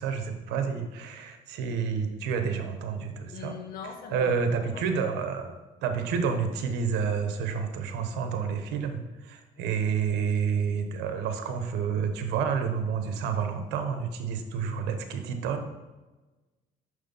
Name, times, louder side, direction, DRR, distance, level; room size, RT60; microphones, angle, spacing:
voice 1, 0.0-3.6 4.1-5.5 5.8-15.7, right 6 dB, 90° right, 7 dB, 1.1 m, -29 dB
voice 2, 3.3-4.4 4.7-5.1 9.6-9.7, left 6 dB, 65° left, 5 dB, 1.4 m, -41 dB
6.5 x 6.1 x 5.4 m, 1.2 s
cardioid pair, 110°, 17 cm